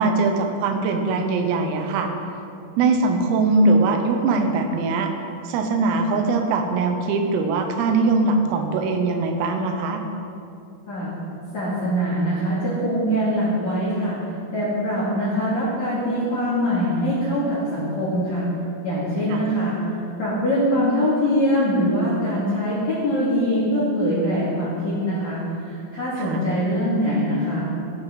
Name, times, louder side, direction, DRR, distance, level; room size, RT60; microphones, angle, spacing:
voice 1, 0.0-2.1 2.8-5.1 5.5-10.0 19.3-19.5 26.2-26.4, right 3 dB, 85° right, 4 dB, 3.7 m, -21 dB
voice 2, 11.5-14.2 14.5-18.4 18.8-19.8 20.2-27.7, equal, 40° left, -9 dB, 3.3 m, -23 dB
15.5 x 11.5 x 4.2 m, 2.6 s
omnidirectional pair, 5.9 m